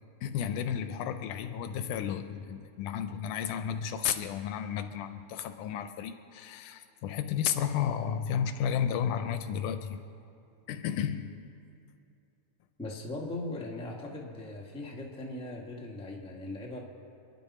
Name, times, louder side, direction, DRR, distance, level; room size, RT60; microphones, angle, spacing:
voice 1, 0.2-10.0 10.7-11.5, left 8 dB, 80° left, 9 dB, 2.1 m, -32 dB
voice 2, 12.8-16.8, left 2 dB, 5° left, -1 dB, 0.5 m, -39 dB
27.0 x 11.0 x 4.2 m, 2.6 s
omnidirectional pair, 3.7 m